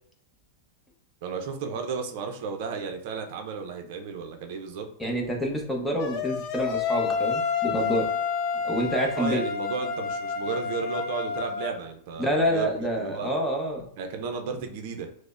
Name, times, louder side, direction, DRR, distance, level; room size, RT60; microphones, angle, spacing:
voice 1, 1.2-4.9 9.1-13.3 14.0-15.1, right 5 dB, 55° right, 4 dB, 0.5 m, -33 dB
voice 2, 5.0-8.1 8.6-9.4 12.2-13.8, equal, 5° left, 0 dB, 0.8 m, -27 dB
sound 1, 6.0-11.8, left 6 dB, 45° left, 0.5 m, -29 dB
4.8 x 2.1 x 2.4 m, 0.64 s
hypercardioid pair, 130°, 0 cm